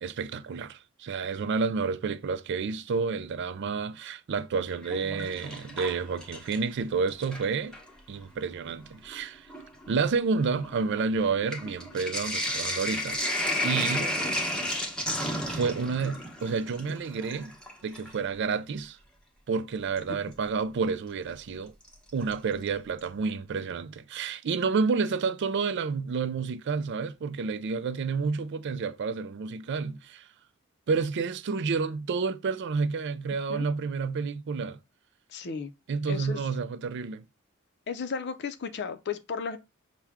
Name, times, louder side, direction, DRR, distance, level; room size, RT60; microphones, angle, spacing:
voice 1, 0.0-7.8 8.1-9.5 9.9-13.2 13.6-14.1 15.5-17.6 17.8-19.0 19.5-21.7 22.1-30.3 30.9-34.8 35.9-37.2, right 5 dB, 55° right, 0.4 m, -30 dB
Sink (filling or washing), 4.7-6.7 7.1-7.9 8.7-8.8 9.1-18.2 20.0-20.1 21.9-22.3 22.7-22.8 23.0-23.1, left 1 dB, 5° left, 1.0 m, -33 dB
voice 2, 14.0-14.4 33.5-33.7 35.3-35.7 36.1-36.4 37.9-39.6, left 5 dB, 55° left, 0.5 m, -34 dB
5.9 x 2.2 x 3.5 m
head